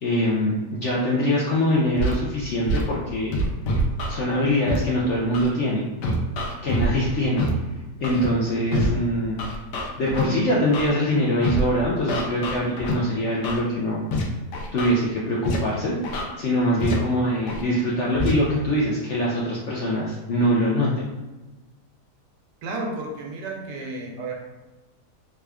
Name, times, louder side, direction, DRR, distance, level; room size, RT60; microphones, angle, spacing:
voice 1, 0.0-3.4 4.1-5.8 6.6-7.4 8.0-9.4 10.0-14.0 14.7-16.0 16.4-21.1, equal, 65° left, -5 dB, 0.7 m, -23 dB
Scratching (performance technique), 2.0-2.1 2.6-2.8 3.3-4.1 4.7-4.8 5.3-5.5 6.0-6.9 7.4-7.5 8.0-8.3 8.7-8.9 9.4-10.2 10.7-10.9 11.4-11.6 12.1-12.9 13.4-13.6 14.1-14.2 14.5-14.9 15.4-15.6 16.0-16.2 16.8-16.9 17.5-17.6 18.1-18.3, equal, 85° left, 1.3 m, -25 dB
voice 2, 22.6-24.3, right 2 dB, 80° right, 0 dB, 1.3 m, -32 dB
3.6 x 2.2 x 3.4 m, 1.1 s
omnidirectional pair, 1.8 m